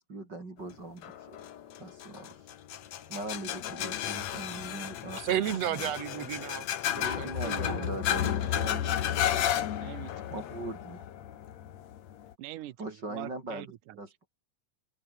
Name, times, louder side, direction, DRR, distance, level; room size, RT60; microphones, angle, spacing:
voice 1, 0.0-1.5 1.8-2.4 3.1-5.9 6.9-8.9 10.3-11.0 12.8-13.7 14.0-14.1, right 2 dB, 30° right, 4.8 m, -40 dB
sound 1, 1.0-12.3, left 11 dB, 60° left, 2.5 m, -33 dB
voice 2, 5.1-8.0, right 11 dB, 60° right, 2.3 m, -33 dB
voice 3, 7.6-9.2 9.8-10.4 12.4-14.0, right 14 dB, 75° right, 2.7 m, -45 dB
open air
omnidirectional pair, 3.7 m